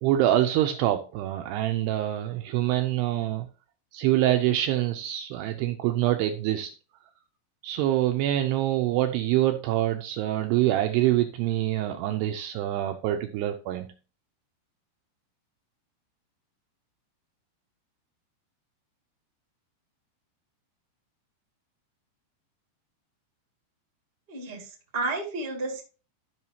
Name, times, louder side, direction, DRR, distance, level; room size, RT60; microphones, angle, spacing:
voice 1, 0.0-3.5 3.9-6.7 7.6-13.9, right 13 dB, 85° right, 5 dB, 2.4 m, -25 dB
voice 2, 24.3-25.8, right 2 dB, 50° right, 0 dB, 0.7 m, -32 dB
12.5 x 5.6 x 2.8 m, 0.34 s
omnidirectional pair, 5.3 m